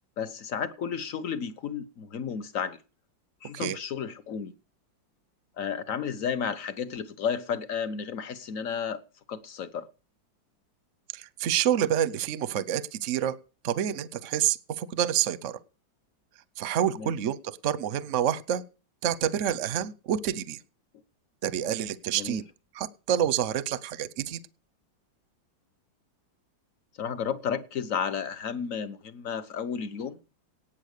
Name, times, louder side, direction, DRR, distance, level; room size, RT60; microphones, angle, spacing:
voice 1, 0.2-2.8 3.4-4.5 5.6-9.0 9.3-9.9 17.0-17.1 22.1-22.4 27.0-30.2, left 7 dB, 50° left, 1.3 m, -32 dB
voice 2, 11.1-13.4 13.6-15.6 16.6-18.6 19.0-20.6 21.4-22.4 22.7-24.4, right 10 dB, 55° right, 0.9 m, -28 dB
18.0 x 7.5 x 6.6 m
omnidirectional pair, 2.1 m